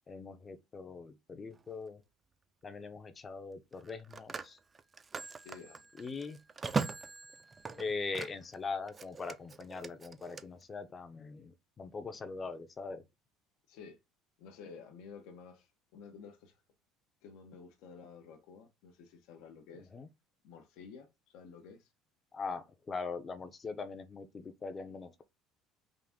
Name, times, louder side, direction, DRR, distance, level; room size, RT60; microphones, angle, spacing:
voice 1, 0.1-2.0 2.6-4.6 6.0-6.4 7.8-13.0 19.9-20.1 22.3-25.2, left 4 dB, 25° left, 0.6 m, -41 dB
Telephone, 1.5-1.8 3.7-8.6 8.9-10.4, right 4 dB, 25° right, 0.3 m, -40 dB
voice 2, 5.4-5.9 13.7-14.0 14.4-16.6 17.2-19.9 20.4-21.9, left 5 dB, 75° left, 0.7 m, -52 dB
3.7 x 2.5 x 3.5 m
cardioid pair, 120°, 0 cm